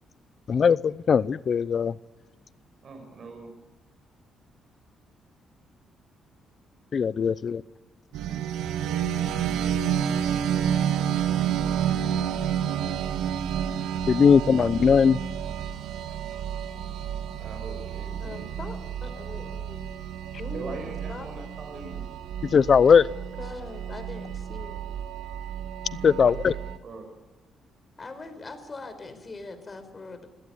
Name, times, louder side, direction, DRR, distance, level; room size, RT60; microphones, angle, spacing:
voice 1, 0.5-2.0 6.9-7.6 14.1-15.2 22.4-23.1 26.0-26.6, left 6 dB, 50° left, 0.7 m, -19 dB
voice 2, 2.8-3.5 17.4-18.5 20.5-22.0 25.9-26.5 26.8-27.1, right 3 dB, 50° right, 5.8 m, -41 dB
sound 1, 8.1-26.8, right 9 dB, 85° right, 1.6 m, -30 dB
voice 3, 18.2-19.9 20.4-21.3 23.4-24.8 28.0-30.3, left 3 dB, 30° left, 4.8 m, -41 dB
26.5 x 17.0 x 9.5 m
cardioid pair, 90°, 0 cm